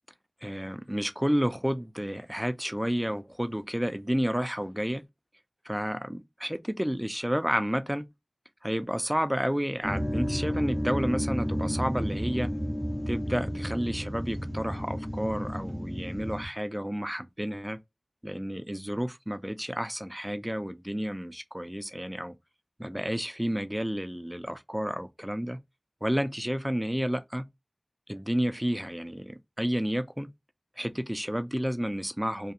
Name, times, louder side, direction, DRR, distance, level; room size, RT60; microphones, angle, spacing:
voice 1, 0.4-5.0 5.7-8.1 8.6-12.5 13.1-17.8 18.2-22.3 22.8-25.6 26.0-27.5 28.1-30.3 30.8-32.5, equal, 10° right, 0.4 m, -31 dB
sound 1, 9.8-16.5, equal, 25° left, 0.8 m, -32 dB
2.8 x 2.4 x 2.4 m
wide cardioid pair, 45°, 0 cm